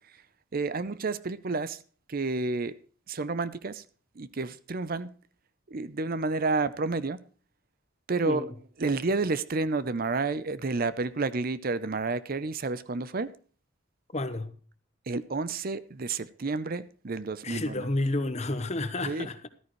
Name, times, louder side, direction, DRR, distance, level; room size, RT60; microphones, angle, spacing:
voice 1, 0.5-1.8 2.1-2.8 3.1-3.8 4.2-5.1 5.7-7.2 8.1-8.5 8.8-13.3 15.1-17.9 19.0-19.3, right 3 dB, 45° right, 0.6 m, -30 dB
voice 2, 14.1-14.5 17.4-19.5, left 2 dB, 35° left, 1.0 m, -30 dB
14.0 x 13.5 x 3.1 m
head